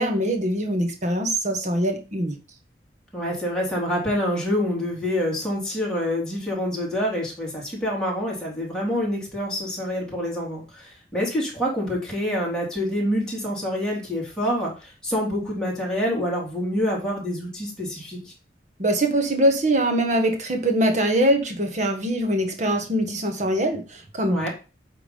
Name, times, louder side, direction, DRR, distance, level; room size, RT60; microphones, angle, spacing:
voice 1, 0.0-2.4 18.8-24.5, right 1 dB, 45° right, 5 dB, 1.5 m, -23 dB
voice 2, 3.1-18.3 24.3-24.5, equal, 5° left, -4 dB, 3.3 m, -26 dB
8.5 x 3.8 x 5.3 m, 0.32 s
head